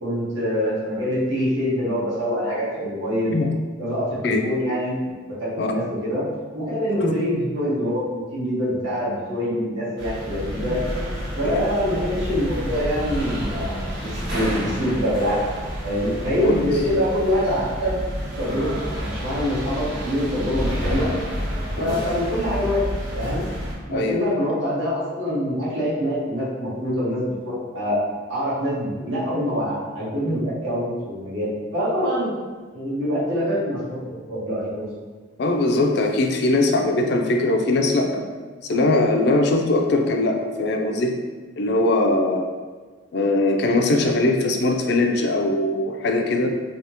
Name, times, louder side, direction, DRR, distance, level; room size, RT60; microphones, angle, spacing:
voice 1, 0.0-3.4 3.8-5.0 5.4-6.2 6.5-10.8 11.4-18.0 18.4-21.1 21.8-22.8 23.1-23.4 23.9-28.0 28.3-32.3 32.7-34.9, equal, 80° right, -9 dB, 1.4 m, -25 dB
sound 1, 10.0-23.7, equal, 65° right, 1.0 m, -29 dB
voice 2, 23.9-24.4 35.4-38.3 38.6-41.2 41.6-42.4 43.1-46.5, left 2 dB, 55° left, 3 dB, 0.4 m, -21 dB
3.4 x 2.9 x 2.9 m, 1.4 s
head